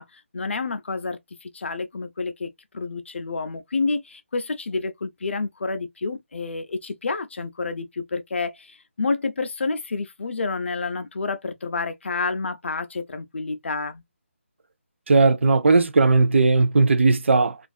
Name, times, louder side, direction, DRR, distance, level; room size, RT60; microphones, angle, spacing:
voice 1, 0.0-14.0, left 4 dB, 60° left, 0.5 m, -29 dB
voice 2, 15.1-17.6, right 3 dB, 60° right, 0.5 m, -17 dB
2.4 x 2.4 x 2.3 m
figure-of-eight pair, 170°, 7 cm